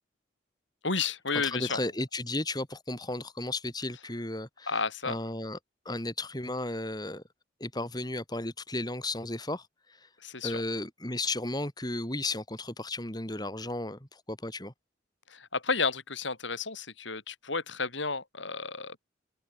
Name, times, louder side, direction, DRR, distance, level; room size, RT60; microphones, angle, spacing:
voice 1, 0.8-1.8 4.7-5.2 10.2-10.6 15.3-19.0, left 4 dB, 75° left, 5.6 m, -32 dB
voice 2, 1.4-5.6 5.9-7.2 7.6-9.7 10.0-10.1 10.4-14.7, left 2 dB, 20° left, 3.3 m, -34 dB
head